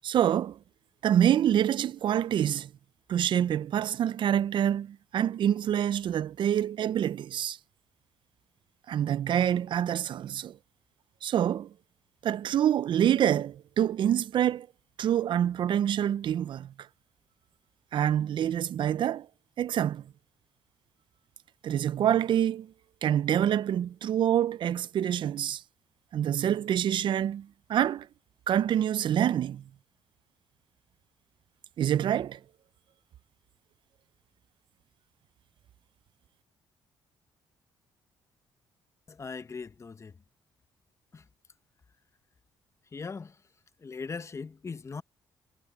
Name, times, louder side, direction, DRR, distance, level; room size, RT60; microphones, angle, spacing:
voice 1, 0.0-0.6 1.0-2.7 3.1-7.6 8.9-10.6 11.2-11.7 12.2-14.7 15.0-16.7 17.9-19.3 19.6-20.0 21.6-22.7 23.0-25.6 26.1-28.1 28.5-29.6 31.8-32.4, right 10 dB, 60° right, 0.6 m, -26 dB
voice 2, 39.1-40.2 41.1-41.3 42.9-43.4 43.8-45.0, left 4 dB, 30° left, 1.1 m, -39 dB
cardioid pair, 75°, 9 cm